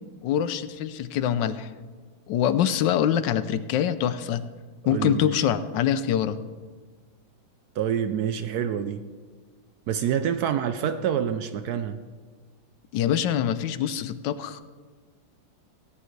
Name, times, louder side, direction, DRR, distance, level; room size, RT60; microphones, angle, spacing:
voice 1, 0.2-1.7 2.3-4.4 4.9-6.4 12.9-14.6, left 9 dB, 75° left, 13 dB, 1.1 m, -24 dB
voice 2, 4.8-5.4 7.8-9.1 9.9-12.0, right 9 dB, 75° right, 9 dB, 0.8 m, -27 dB
17.5 x 10.5 x 3.2 m, 1.5 s
omnidirectional pair, 2.2 m